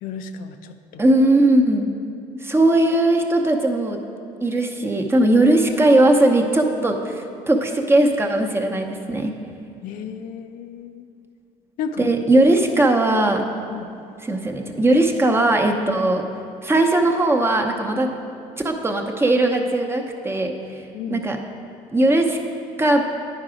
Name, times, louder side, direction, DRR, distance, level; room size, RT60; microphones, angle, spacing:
voice 1, 0.0-1.0 9.8-11.1 11.8-12.1 13.7-13.9 20.9-21.3, left 6 dB, 75° left, 7 dB, 0.5 m, -33 dB
voice 2, 1.0-1.9 2.4-4.0 4.4-9.3 12.0-13.4 14.2-16.2 16.6-18.1 18.6-21.4 21.9-22.4 22.8-23.0, right 1 dB, 15° right, 3 dB, 0.8 m, -19 dB
10.0 x 4.8 x 5.0 m, 2.6 s
cardioid pair, 90°, 15 cm